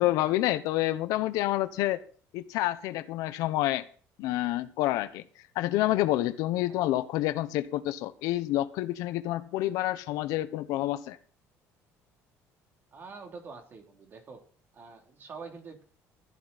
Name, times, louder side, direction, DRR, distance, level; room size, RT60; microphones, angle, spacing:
voice 1, 0.0-2.0 2.3-3.8 4.2-5.2 5.5-11.2, left 15 dB, 80° left, 12 dB, 1.0 m, -28 dB
voice 2, 12.9-14.4 14.7-15.8, right 4 dB, 40° right, 2 dB, 3.3 m, -45 dB
14.5 x 10.5 x 4.2 m, 0.44 s
cardioid pair, 135°, 6 cm